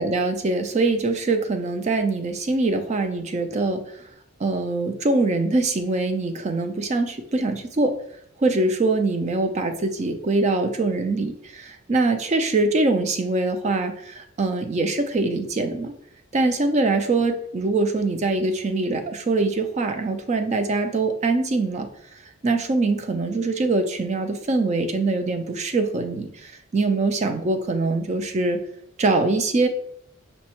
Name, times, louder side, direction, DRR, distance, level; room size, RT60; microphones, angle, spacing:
voice 1, 0.0-4.0 4.4-7.9 8.4-15.9 16.3-21.9 22.4-28.6 29.0-29.7, right 3 dB, 30° right, 6 dB, 0.3 m, -23 dB
5.3 x 2.0 x 2.9 m, 0.69 s
head